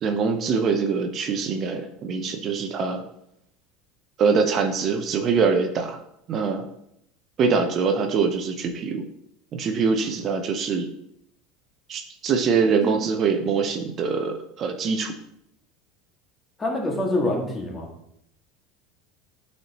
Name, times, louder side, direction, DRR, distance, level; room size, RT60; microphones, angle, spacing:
voice 1, 0.0-3.0 4.2-6.0 6.3-6.6 7.4-9.1 9.5-10.9 11.9-15.1, right 5 dB, 45° right, 6 dB, 0.7 m, -23 dB
voice 2, 16.6-17.9, left 1 dB, 20° left, 0 dB, 1.9 m, -26 dB
8.9 x 4.3 x 3.0 m, 0.75 s
hypercardioid pair, 80°, 0 cm